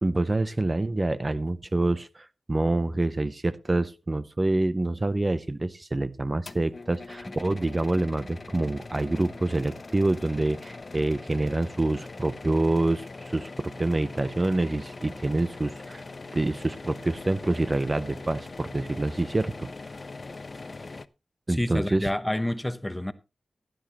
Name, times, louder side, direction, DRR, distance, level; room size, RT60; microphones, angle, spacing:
voice 1, 0.0-16.0 16.3-19.7 21.5-22.1, right 2 dB, 30° right, 0.6 m, -27 dB
sound 1, 6.5-21.1, left 3 dB, 45° left, 0.5 m, -42 dB
sound 2, 11.3-19.7, right 2 dB, 60° right, 2.4 m, -55 dB
voice 2, 21.5-23.1, left 1 dB, 10° left, 0.9 m, -29 dB
15.5 x 10.5 x 3.0 m
wide cardioid pair, 75°, 0 cm